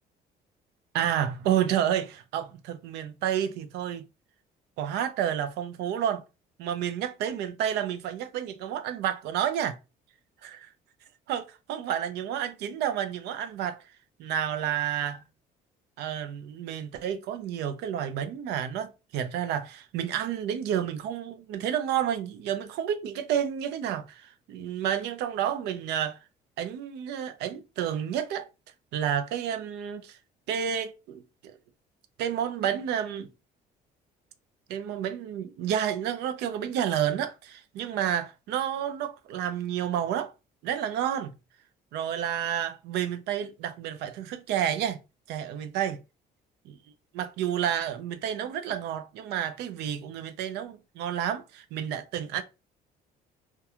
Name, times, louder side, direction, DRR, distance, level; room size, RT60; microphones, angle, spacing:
voice 1, 0.9-4.0 4.8-6.2 6.6-9.8 10.4-10.7 11.3-13.8 14.2-15.2 16.0-26.2 26.6-28.5 28.9-30.2 30.5-31.6 32.2-33.3 34.7-40.3 40.6-41.3 41.9-45.0 45.3-46.0 46.7-46.8 47.1-52.4, right 9 dB, 80° right, 0.4 m, -30 dB
2.8 x 2.2 x 2.3 m
cardioid pair, 110°, 17 cm